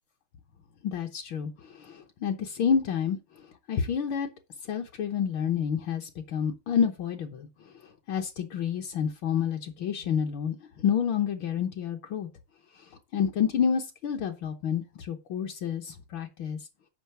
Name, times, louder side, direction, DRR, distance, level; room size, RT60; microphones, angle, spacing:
voice 1, 0.8-3.2 3.7-4.3 4.7-7.5 8.1-12.3 13.1-16.6, left 7 dB, 70° left, 1.7 m, -29 dB
8.0 x 5.6 x 5.6 m
omnidirectional pair, 2.3 m